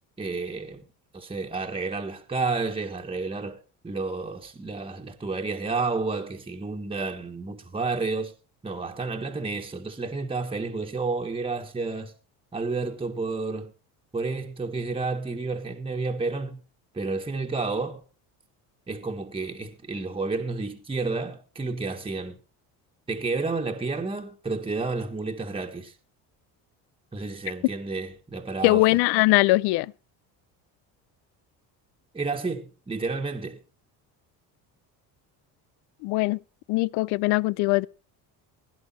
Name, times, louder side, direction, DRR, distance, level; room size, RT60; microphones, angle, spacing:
voice 1, 0.2-0.8 1.1-3.6 3.8-8.3 8.6-12.1 12.5-13.7 14.1-16.6 16.9-18.0 18.9-22.3 23.1-25.9 27.1-28.9 32.1-33.6, right 3 dB, 15° right, 1.5 m, -30 dB
voice 2, 28.6-29.9 36.0-36.4 36.7-37.9, left 20 dB, 75° left, 0.5 m, -21 dB
16.5 x 10.5 x 4.3 m
cardioid pair, 105°, 39 cm